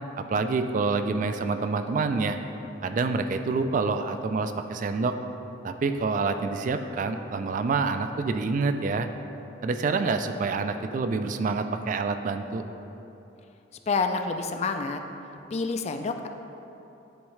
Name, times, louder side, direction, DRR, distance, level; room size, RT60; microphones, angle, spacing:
voice 1, 0.2-2.4 2.8-5.1 5.6-9.1 9.6-12.6, right 4 dB, 45° right, 8 dB, 0.3 m, -27 dB
voice 2, 13.9-15.0 15.5-16.3, left 4 dB, 35° left, 6 dB, 0.3 m, -28 dB
10.5 x 3.6 x 3.2 m, 2.9 s
head